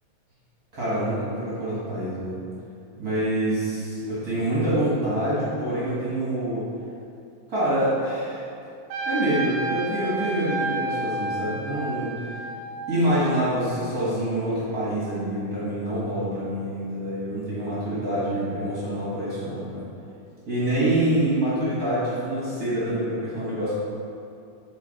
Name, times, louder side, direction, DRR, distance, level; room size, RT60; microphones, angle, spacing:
voice 1, 0.7-2.4 2.9-6.7 7.5-8.4 9.0-12.1 12.9-19.8 20.5-23.7, right 1 dB, 40° right, -10 dB, 1.4 m, -26 dB
Trumpet, 8.9-13.6, right 2 dB, 90° right, 2.0 m, -31 dB
7.2 x 4.4 x 4.0 m, 2.5 s
omnidirectional pair, 3.4 m